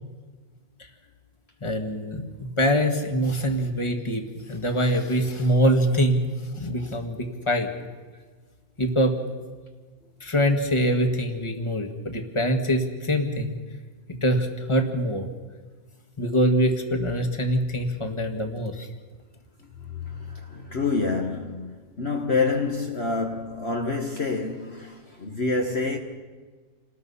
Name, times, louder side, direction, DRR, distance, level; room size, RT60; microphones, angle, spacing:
voice 1, 1.6-4.2 4.5-6.2 6.6-7.7 8.8-9.2 10.2-13.6 14.2-15.3 16.2-18.9, equal, 20° left, 1.8 m, -24 dB
voice 2, 20.1-26.0, left 3 dB, 45° left, 1.5 m, -27 dB
28.5 x 19.5 x 5.6 m
omnidirectional pair, 1.6 m